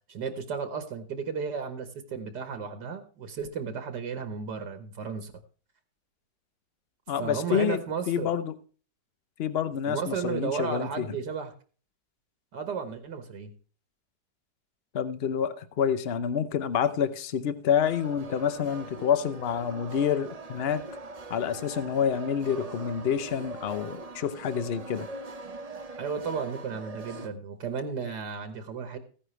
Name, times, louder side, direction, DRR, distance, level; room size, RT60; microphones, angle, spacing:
voice 1, 0.1-5.3 7.2-8.3 9.9-11.5 12.5-13.5 26.0-29.0, right 6 dB, 70° right, 1.8 m, -34 dB
voice 2, 7.1-7.8 8.1-8.6 9.4-11.1 14.9-20.8 21.3-25.1, left 8 dB, 50° left, 0.7 m, -28 dB
sound 1, 17.8-27.3, right 3 dB, 35° right, 0.5 m, -41 dB
15.0 x 10.0 x 3.2 m
omnidirectional pair, 1.9 m